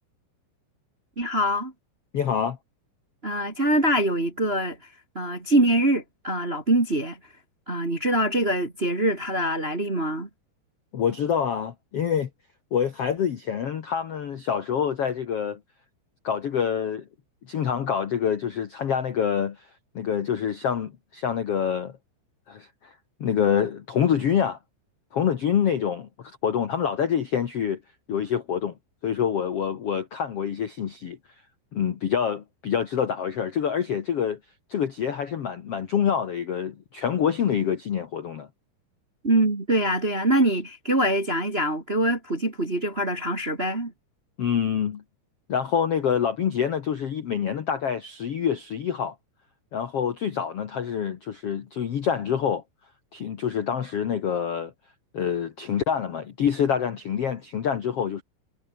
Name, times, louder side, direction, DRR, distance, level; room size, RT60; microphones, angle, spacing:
voice 1, 1.2-1.7 3.2-4.8 5.1-7.2 7.7-10.3 39.2-43.9, right 1 dB, 30° right, 1.2 m, -24 dB
voice 2, 2.1-2.6 10.9-12.3 12.7-15.6 16.2-17.1 17.5-19.7 19.9-21.9 22.5-22.9 23.2-24.6 25.1-27.8 28.1-28.7 29.0-31.2 31.7-34.4 34.7-38.5 44.4-45.0 45.5-49.1 49.7-52.6 53.1-54.7 55.1-58.2, left 8 dB, 85° left, 1.3 m, -26 dB
omnidirectional pair, 5.2 m